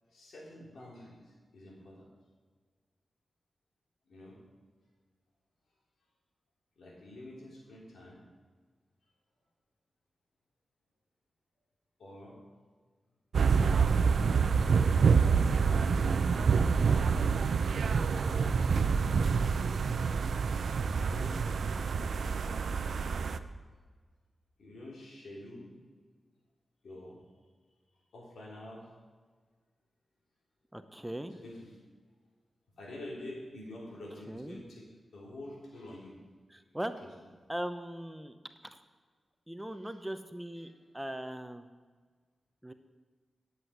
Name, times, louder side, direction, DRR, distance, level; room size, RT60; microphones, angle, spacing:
voice 1, 0.1-2.1 4.1-4.4 6.7-8.2 12.0-12.4 13.8-15.2 20.9-23.1 24.6-25.7 26.8-27.2 28.1-28.9 31.3-31.7 32.8-34.9 35.1-36.2 40.6-40.7, left 1 dB, 80° left, -3 dB, 3.4 m, -48 dB
sound 1, 13.3-23.4, right 5 dB, 80° right, 0.5 m, -27 dB
voice 2, 30.7-31.3 34.3-34.6 36.5-36.9 37.5-38.3 38.7-38.8 39.5-41.7 42.6-42.7, right 1 dB, 10° right, 9 dB, 0.8 m, -39 dB
10.5 x 8.3 x 6.0 m, 1.5 s
cardioid pair, 55°, 0 cm